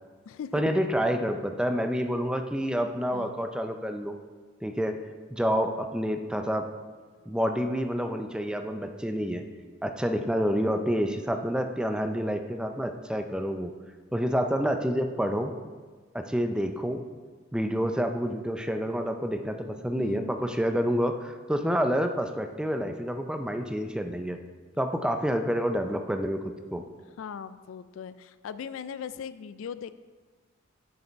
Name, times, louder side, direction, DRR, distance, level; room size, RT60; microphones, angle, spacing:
voice 1, 0.5-4.2 4.6-5.0 5.3-6.7 7.3-9.4 9.8-13.7 14.1-15.5 16.1-17.0 17.5-24.4 24.8-26.8, equal, 5° right, 6 dB, 0.4 m, -28 dB
voice 2, 3.1-3.4 7.1-7.3 20.0-20.3 27.2-29.9, left 7 dB, 80° left, 14 dB, 0.3 m, -39 dB
6.8 x 6.5 x 4.5 m, 1.4 s
head